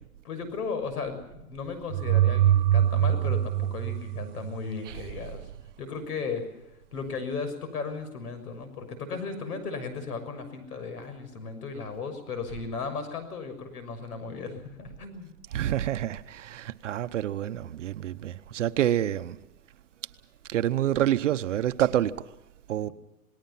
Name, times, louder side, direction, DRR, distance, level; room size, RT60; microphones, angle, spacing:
voice 1, 0.2-5.4 5.8-6.5 6.9-15.3, left 4 dB, 85° left, 6.7 m, -35 dB
sound 1, 1.9-4.8, right 11 dB, 30° right, 1.0 m, -23 dB
voice 2, 15.5-19.4 20.5-22.2 22.7-22.9, right 11 dB, 55° right, 0.9 m, -27 dB
27.5 x 20.0 x 5.7 m
supercardioid pair, 180°, 45 cm